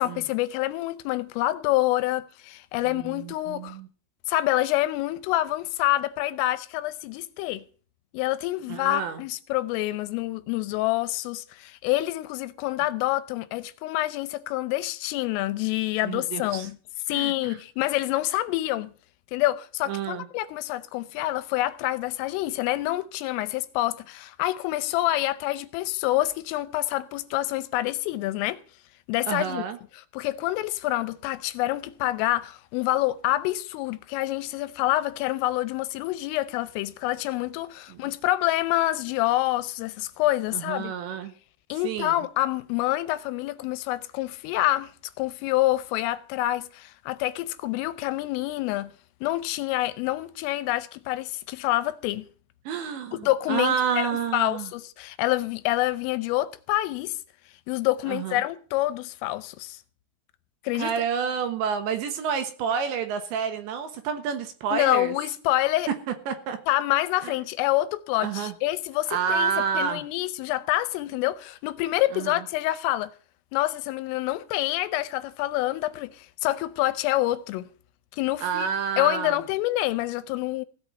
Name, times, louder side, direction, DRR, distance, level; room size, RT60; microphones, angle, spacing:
voice 1, 0.0-3.8 4.3-7.6 8.1-16.8 17.1-18.9 19.3-28.6 29.1-29.6 29.9-40.9 41.7-44.9 45.2-48.9 49.2-52.3 53.2-57.1 57.7-59.8 60.6-60.9 64.7-65.9 66.7-73.1 73.5-77.7 78.1-78.7 79.0-80.7, left 16 dB, 80° left, 3.2 m, -27 dB
voice 2, 2.8-3.9 8.7-9.2 16.0-16.7 17.1-17.3 19.9-20.3 29.3-29.8 37.9-38.0 40.5-41.3 41.8-42.2 52.7-54.7 58.1-58.4 60.7-65.1 66.3-66.6 67.2-67.3 68.2-68.5 69.1-70.0 72.1-72.4 78.4-79.4, right 7 dB, 70° right, 3.2 m, -29 dB
16.5 x 5.6 x 9.0 m
omnidirectional pair, 6.0 m